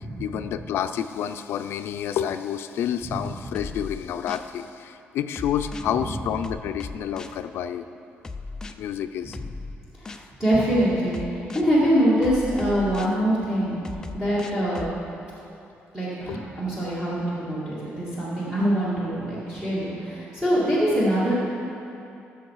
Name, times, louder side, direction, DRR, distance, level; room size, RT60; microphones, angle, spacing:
voice 1, 0.2-7.8 8.8-9.4 16.3-16.4, left 9 dB, 70° left, 9 dB, 0.5 m, -29 dB
sound 1, 3.5-4.5 5.3-5.9 6.4-7.4 8.2-8.7 9.3-10.3 11.1-11.7 12.2-13.2 13.8-15.0, left 3 dB, 15° left, 0.4 m, -37 dB
voice 2, 10.0-13.7 14.1-14.9 15.9-21.4, equal, 10° right, -10 dB, 2.2 m, -24 dB
18.0 x 7.0 x 4.7 m, 2.7 s
cardioid pair, 175°, 4 cm